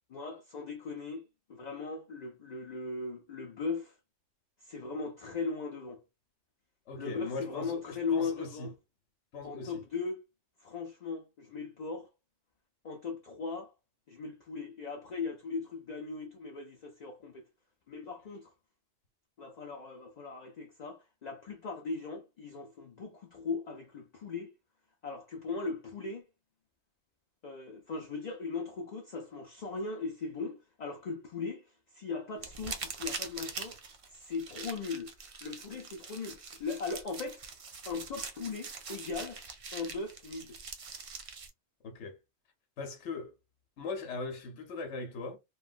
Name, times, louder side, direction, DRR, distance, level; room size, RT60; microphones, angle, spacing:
voice 1, 0.1-4.0 4.6-6.0 6.9-8.7 9.4-10.2 10.6-12.1 12.8-13.7 14.1-17.4 17.9-18.5 19.4-24.5 25.0-26.3 27.4-31.6 31.9-33.8 34.1-35.1 35.4-37.4 37.9-39.4 39.7-40.6, left 4 dB, 50° left, 0.5 m, -38 dB
voice 2, 6.9-8.7 9.3-9.7 41.8-42.2 42.8-43.3 43.8-45.4, left 4 dB, 80° left, 1.1 m, -39 dB
sound 1, 32.4-41.5, right 5 dB, 55° right, 0.3 m, -43 dB
3.1 x 2.3 x 2.4 m
omnidirectional pair, 1.2 m